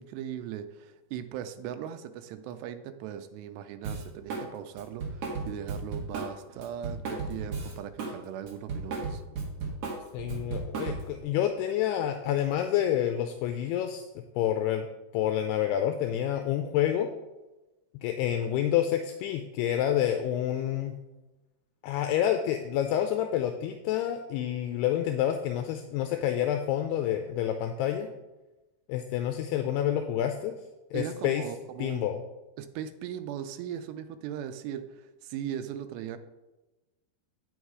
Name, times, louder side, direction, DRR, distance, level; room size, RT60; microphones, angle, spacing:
voice 1, 0.0-9.2 30.9-32.1 32.6-36.2, right 9 dB, 85° right, 9 dB, 2.7 m, -39 dB
Drum kit, 3.8-4.5 4.8-8.2 8.5-11.2, right 4 dB, 55° right, 2.3 m, -34 dB
voice 2, 10.1-14.9 15.1-17.1 18.0-20.9 21.8-28.1 28.9-30.5 30.9-31.4 31.8-32.2, left 11 dB, 80° left, 6 dB, 2.5 m, -28 dB
9.1 x 6.3 x 4.8 m, 1.1 s
omnidirectional pair, 4.9 m